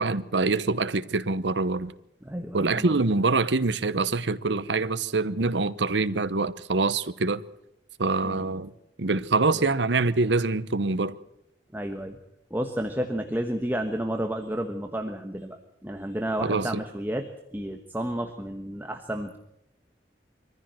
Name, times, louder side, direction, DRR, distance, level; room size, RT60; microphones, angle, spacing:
voice 1, 0.0-1.9 2.5-7.4 8.0-8.7 9.0-11.2 16.4-16.7, right 3 dB, 80° right, 1.0 m, -25 dB
voice 2, 2.2-3.1 8.2-8.5 9.6-9.7 11.7-12.2 12.5-19.4, right 1 dB, 10° right, 1.3 m, -31 dB
23.5 x 14.5 x 7.7 m
head